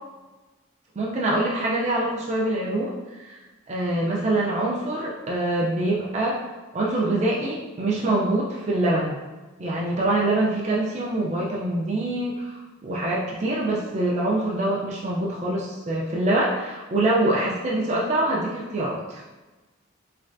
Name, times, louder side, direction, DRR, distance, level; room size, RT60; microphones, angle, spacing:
voice 1, 1.0-3.4 3.7-6.4 6.7-9.2 9.6-19.2, right 1 dB, 35° right, -4 dB, 0.4 m, -25 dB
3.2 x 2.3 x 2.5 m, 1.2 s
head